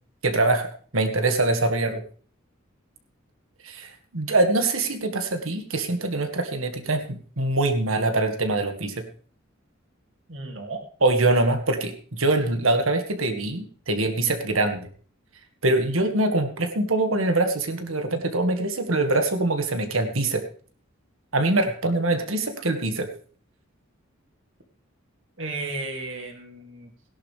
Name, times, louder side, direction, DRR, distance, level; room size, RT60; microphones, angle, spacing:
voice 1, 0.2-2.0 3.6-9.0 11.0-14.9 15.6-20.4 21.3-23.1, right 2 dB, 85° right, 7 dB, 1.8 m, -24 dB
voice 2, 10.3-10.8 25.4-26.9, right 3 dB, 65° right, 4 dB, 2.5 m, -34 dB
17.0 x 11.0 x 3.4 m, 0.42 s
head